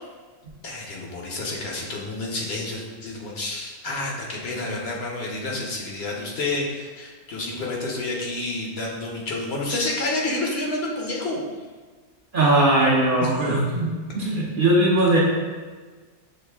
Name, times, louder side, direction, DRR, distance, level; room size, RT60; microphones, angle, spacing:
voice 1, 0.6-11.4 13.2-13.3, left 2 dB, 60° left, -2 dB, 0.9 m, -29 dB
voice 2, 12.3-15.2, right 1 dB, 50° right, -4 dB, 0.7 m, -20 dB
6.2 x 2.5 x 3.3 m, 1.4 s
omnidirectional pair, 1.3 m